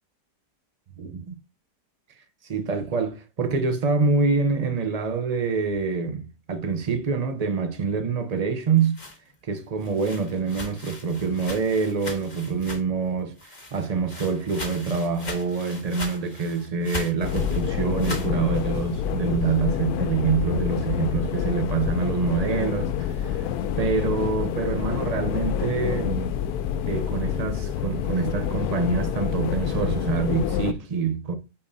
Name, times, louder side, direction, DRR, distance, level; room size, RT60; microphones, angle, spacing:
voice 1, 1.0-1.3 2.4-9.0 9.4-23.5 23.8-26.4 26.9-31.3, right 5 dB, 50° right, 0.4 m, -26 dB
sound 1, 8.6-13.1 13.4-18.3, left 1 dB, 30° left, 1.4 m, -39 dB
sound 2, 17.2-30.7, left 9 dB, 75° left, 1.0 m, -27 dB
8.5 x 4.4 x 2.7 m
omnidirectional pair, 1.8 m